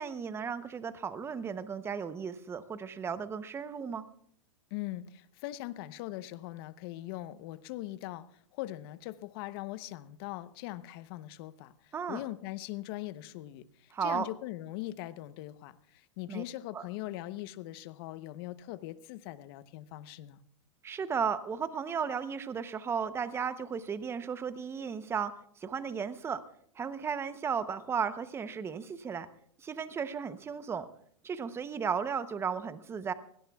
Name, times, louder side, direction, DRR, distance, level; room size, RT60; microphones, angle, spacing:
voice 1, 0.0-4.0 11.9-12.2 13.9-14.3 16.3-16.4 16.7-16.8 20.8-25.3 25.6-26.4 26.8-29.3 29.6-30.9 31.2-33.1, right 6 dB, 15° right, 13 dB, 0.7 m, -35 dB
voice 2, 4.7-8.3 8.5-20.4, left 16 dB, 50° left, 14 dB, 0.8 m, -41 dB
24.0 x 16.5 x 2.3 m, 0.65 s
hypercardioid pair, 130°, 16 cm